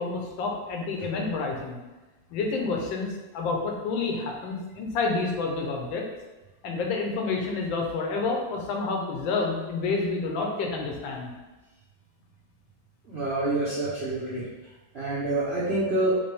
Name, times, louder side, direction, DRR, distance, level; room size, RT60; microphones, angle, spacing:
voice 1, 0.0-1.8 2.3-6.0 6.6-11.3, left 3 dB, 90° left, 1 dB, 1.5 m, -29 dB
voice 2, 13.1-14.4 14.9-16.2, right 2 dB, 45° right, -9 dB, 0.9 m, -27 dB
4.3 x 3.5 x 3.4 m, 1.1 s
omnidirectional pair, 2.1 m